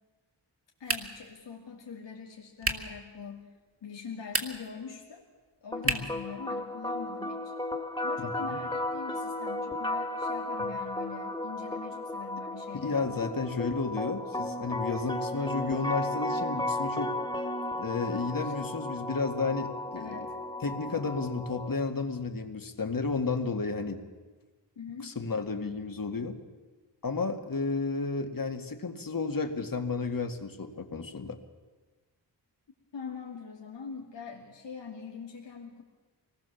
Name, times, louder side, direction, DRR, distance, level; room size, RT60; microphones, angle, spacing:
voice 1, 0.8-3.4 3.8-5.2 5.6-7.5 8.0-13.1 18.4-18.5 19.9-20.3 24.8-25.2 32.9-35.8, left 6 dB, 85° left, -1 dB, 2.6 m, -43 dB
sound 1, 0.8-1.3 2.6-3.0 4.2-4.8 5.8-6.2, right 2 dB, 30° right, 2.2 m, -31 dB
sound 2, 5.7-21.7, left 1 dB, 10° left, 2.2 m, -34 dB
voice 2, 8.2-8.6 12.7-17.2 17.8-20.3 20.6-24.0 25.0-26.4 27.0-31.4, left 4 dB, 50° left, 6 dB, 2.1 m, -32 dB
25.0 x 19.5 x 7.1 m, 1.3 s
wide cardioid pair, 80°, 42 cm